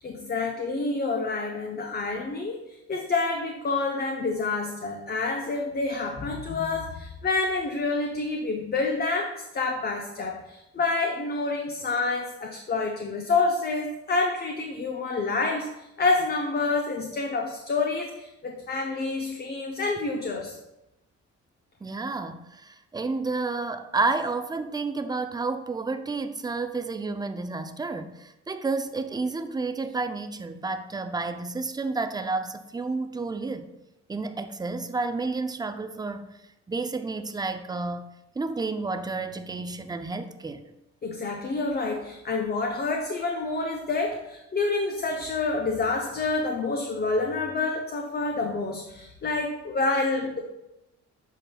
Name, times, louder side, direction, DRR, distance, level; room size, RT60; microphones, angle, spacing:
voice 1, 0.0-20.6 41.0-50.4, left 3 dB, 30° left, 2 dB, 0.7 m, -28 dB
voice 2, 21.8-33.7 34.1-36.3 36.7-38.1 38.4-40.6, right 3 dB, 15° right, 9 dB, 0.4 m, -30 dB
8.0 x 5.8 x 2.3 m, 0.92 s
cardioid pair, 90°, 30 cm